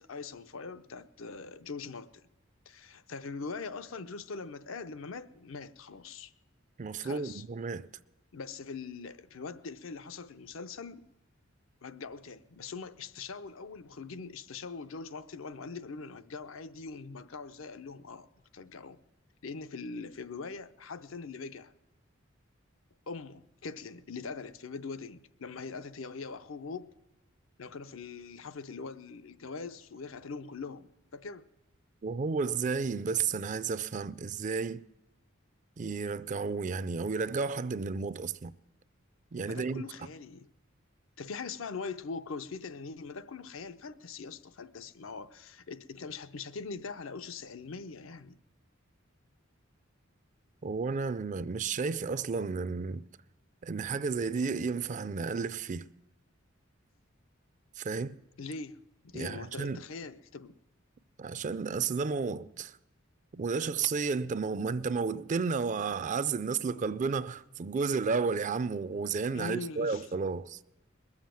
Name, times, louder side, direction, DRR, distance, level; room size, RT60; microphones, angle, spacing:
voice 1, 0.0-2.3 2.7-6.3 7.0-7.4 8.3-11.0 11.8-18.3 18.5-19.0 19.4-21.7 23.1-26.9 27.6-31.4 39.5-40.5 41.2-48.4 58.4-60.5 69.3-70.0, left 4 dB, 80° left, 0.7 m, -42 dB
voice 2, 6.8-7.9 32.0-34.8 35.8-38.5 39.3-39.8 50.6-53.0 53.6-55.9 57.8-58.2 59.1-59.8 61.2-62.8 63.3-70.6, right 5 dB, 40° right, 0.4 m, -32 dB
21.0 x 7.4 x 7.5 m
head